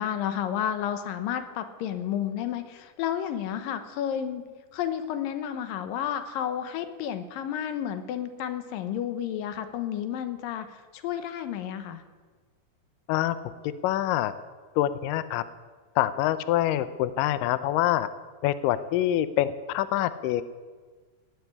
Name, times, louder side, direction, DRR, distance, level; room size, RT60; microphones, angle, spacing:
voice 1, 0.0-4.4 4.7-12.0, left 10 dB, 70° left, 9 dB, 2.5 m, -31 dB
voice 2, 13.6-14.3 14.8-15.4 16.0-18.1 18.4-20.4, left 13 dB, 85° left, 13 dB, 1.9 m, -25 dB
17.5 x 8.0 x 9.8 m, 1.4 s
omnidirectional pair, 4.6 m